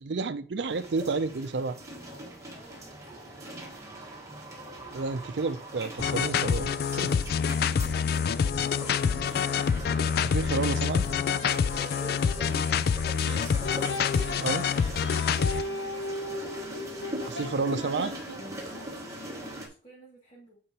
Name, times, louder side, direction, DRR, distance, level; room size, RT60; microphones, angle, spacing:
voice 1, 0.0-1.8 4.9-7.1 10.2-11.1 14.4-14.7 17.3-18.1, right 4 dB, 80° right, 0.5 m, -30 dB
sound 1, 0.7-19.7, right 1 dB, 20° right, 1.5 m, -41 dB
voice 2, 2.5-3.5 7.7-9.2 11.8-13.0 15.6-16.2 18.6-20.6, right 1 dB, 40° left, 2.4 m, -53 dB
sound 2, 6.0-15.6, left 7 dB, 60° left, 0.3 m, -26 dB
sound 3, 11.0-12.4 13.3-18.7, left 2 dB, 80° left, 1.4 m, -37 dB
8.7 x 4.8 x 2.9 m
head